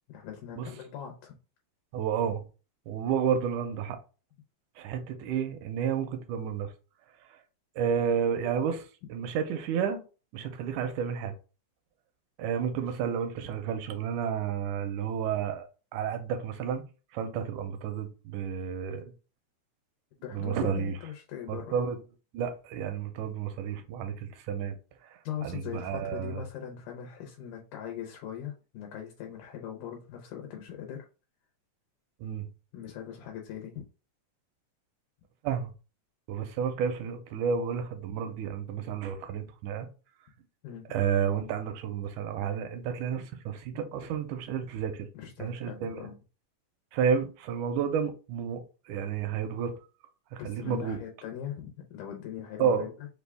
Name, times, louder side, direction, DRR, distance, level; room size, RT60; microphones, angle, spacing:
voice 1, 0.1-1.3 20.2-21.9 25.2-31.1 32.7-33.9 40.6-40.9 45.1-46.2 50.4-53.1, left 9 dB, 80° left, 2.3 m, -40 dB
voice 2, 1.9-2.5 2.9-4.0 4.8-6.7 7.3-7.4 7.8-10.0 10.3-11.3 12.4-15.6 15.9-16.8 17.1-19.1 20.3-21.0 21.5-22.0 22.3-24.8 25.4-26.4 32.2-32.5 35.4-35.7 36.3-39.9 40.9-45.1 45.4-46.1 46.9-49.7 50.3-51.0 52.6-52.9, right 7 dB, 80° right, 2.1 m, -31 dB
5.3 x 2.3 x 3.4 m
omnidirectional pair, 3.6 m